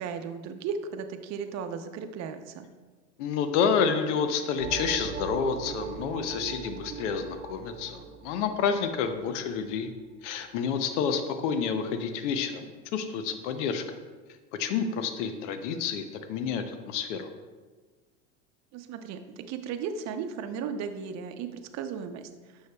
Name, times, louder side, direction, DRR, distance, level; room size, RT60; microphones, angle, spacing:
voice 1, 0.0-2.7 18.7-22.6, right 6 dB, 50° right, 8 dB, 0.7 m, -36 dB
voice 2, 3.2-9.9 10.2-14.0 14.6-17.3, left 6 dB, 80° left, 8 dB, 0.7 m, -29 dB
sound 1, 4.6-9.9, right 7 dB, 90° right, 0.5 m, -40 dB
9.3 x 6.5 x 2.3 m, 1.4 s
supercardioid pair, 110°, 36 cm